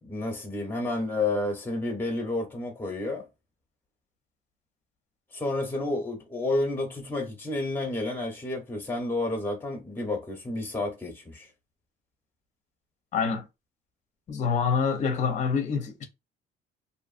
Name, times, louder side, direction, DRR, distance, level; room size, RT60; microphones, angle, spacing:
voice 1, 0.0-3.3 5.3-11.5, left 2 dB, 10° left, 1.0 m, -30 dB
voice 2, 13.1-13.4 14.3-16.1, left 5 dB, 45° left, 0.7 m, -26 dB
2.7 x 2.4 x 2.5 m
cardioid pair, 110°, 17 cm